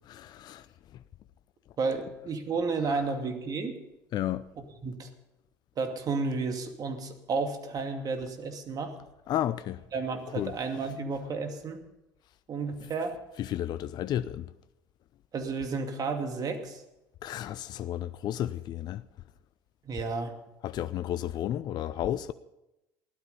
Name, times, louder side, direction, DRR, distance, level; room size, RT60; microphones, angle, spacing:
voice 1, 0.1-0.7 2.9-3.0 4.1-4.5 9.3-9.8 10.4-10.5 13.4-14.5 17.2-19.0 20.6-22.3, left 12 dB, 45° left, 0.6 m, -32 dB
voice 2, 1.8-3.7 4.6-5.1 5.8-8.9 9.9-11.8 12.5-13.2 15.3-16.8 19.8-20.3, right 4 dB, 40° right, 2.4 m, -32 dB
16.0 x 12.0 x 5.4 m
hypercardioid pair, 70°, 10 cm